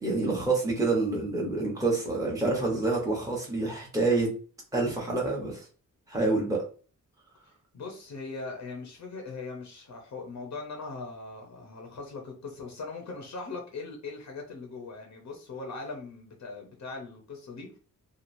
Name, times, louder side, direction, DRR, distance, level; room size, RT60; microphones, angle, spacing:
voice 1, 0.0-4.3 4.7-5.6 6.1-6.6, right 3 dB, 10° right, 0.9 m, -27 dB
voice 2, 7.7-17.8, left 3 dB, 60° left, 0.7 m, -40 dB
3.0 x 2.4 x 2.5 m
wide cardioid pair, 120°, 33 cm